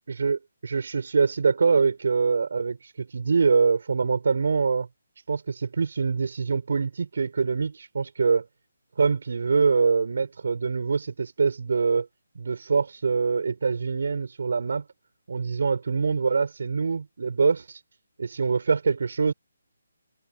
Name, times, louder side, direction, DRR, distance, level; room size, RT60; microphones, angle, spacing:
voice 1, 0.1-4.9 5.3-8.5 9.0-12.1 12.4-14.8 15.3-17.8 18.2-19.3, right 5 dB, 65° right, 5.2 m, -24 dB
hypercardioid pair, 155°, 0 cm